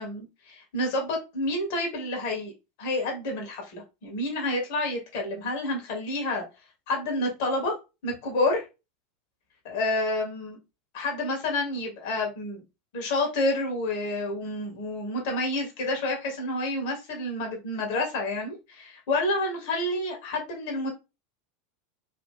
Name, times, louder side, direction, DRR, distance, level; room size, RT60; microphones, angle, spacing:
voice 1, 0.0-2.5 2.8-6.4 6.9-7.7 8.0-8.6 9.6-10.6 10.9-12.6 12.9-20.9, left 2 dB, 55° left, 1 dB, 1.5 m, -29 dB
2.9 x 2.6 x 3.6 m, 0.27 s
figure-of-eight pair, 80°, 0 cm